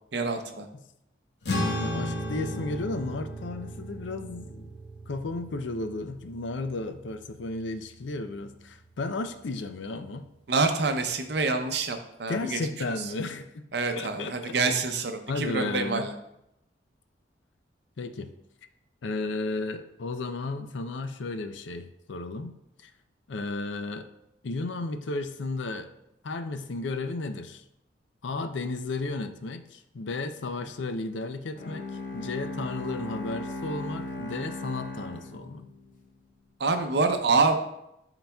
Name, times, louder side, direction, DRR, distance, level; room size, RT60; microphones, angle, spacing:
voice 1, 0.1-0.7 10.5-12.6 12.9-13.0 13.7-16.1 36.6-37.6, right 3 dB, 65° right, 6 dB, 0.6 m, -26 dB
sound 1, 1.4-8.1, left 1 dB, 70° left, 1.2 m, -35 dB
voice 2, 1.6-4.7 5.1-10.3 12.3-13.7 14.0-14.6 15.3-16.1 18.0-18.3 19.0-22.5 22.8-22.9 23.3-24.1 24.4-25.9 26.2-27.6 28.2-31.8 32.1-35.7, left 3 dB, 90° left, 10 dB, 0.5 m, -34 dB
Bowed string instrument, 31.6-36.0, left 2 dB, 45° left, 0.8 m, -37 dB
11.5 x 3.9 x 2.3 m, 0.82 s
head